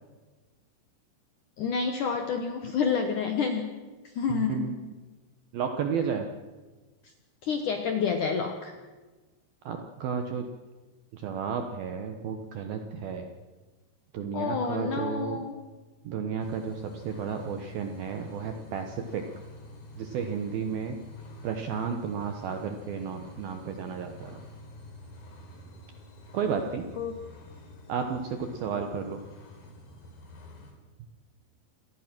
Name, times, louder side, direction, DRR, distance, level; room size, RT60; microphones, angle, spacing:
voice 1, 1.6-3.7 4.2-4.8 7.4-8.8 14.3-15.6 27.0-27.2, left 6 dB, 80° left, 5 dB, 1.8 m, -29 dB
voice 2, 4.3-4.9 5.5-6.3 9.6-10.5 11.1-13.3 14.1-15.4 16.0-19.2 20.0-21.0 21.4-24.4 26.3-26.9 27.9-29.2, right 6 dB, 75° right, 5 dB, 2.2 m, -32 dB
sound 1, 16.4-30.7, left 1 dB, 50° left, 4.7 m, -48 dB
27.5 x 19.0 x 6.1 m, 1.3 s
omnidirectional pair, 5.8 m